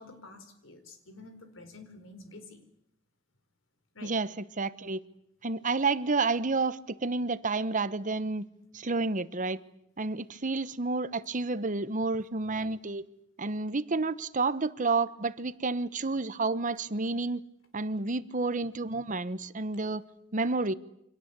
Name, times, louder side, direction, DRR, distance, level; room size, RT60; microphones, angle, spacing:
voice 1, 0.0-2.7 3.9-4.2 12.6-12.7, left 2 dB, 70° left, 4.4 m, -49 dB
voice 2, 4.0-5.0 5.4-8.5 8.7-9.6 10.0-13.0 13.4-17.4 17.7-20.0 20.3-20.7, right 3 dB, 40° right, 1.1 m, -30 dB
28.5 x 25.5 x 8.3 m
head